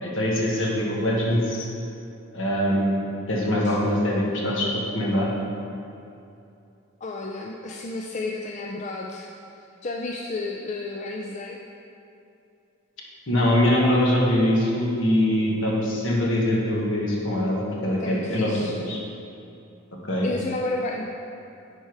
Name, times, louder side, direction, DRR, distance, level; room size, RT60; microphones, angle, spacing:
voice 1, 0.0-1.7 2.3-5.3 13.3-19.0 20.1-20.3, left 1 dB, 65° left, -3 dB, 1.6 m, -23 dB
voice 2, 7.0-9.3 9.8-11.6 17.9-18.7 20.2-21.0, left 2 dB, 35° left, 0 dB, 0.4 m, -31 dB
10.0 x 4.4 x 4.7 m, 2.7 s
head